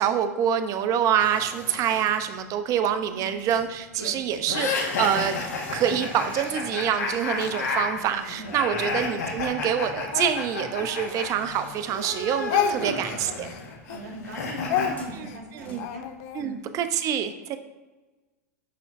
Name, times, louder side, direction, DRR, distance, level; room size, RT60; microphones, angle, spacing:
voice 1, 0.0-13.5 15.1-15.9 16.3-17.6, right 9 dB, 40° right, 10 dB, 0.6 m, -26 dB
sound 1, 1.2-16.5, left 2 dB, 15° left, 1.5 m, -47 dB
sound 2, 4.5-11.3 11.5-14.9, left 4 dB, 75° left, 1.4 m, -31 dB
Speech, 5.2-8.4 8.9-11.8 12.0-16.4, left 8 dB, 50° left, 0.6 m, -33 dB
voice 2, 8.3-8.9 12.7-13.0 13.8-16.0 16.4-16.6, right 1 dB, 90° right, 0 dB, 1.5 m, -38 dB
11.0 x 3.7 x 2.6 m, 1.2 s
hypercardioid pair, 105°, 9 cm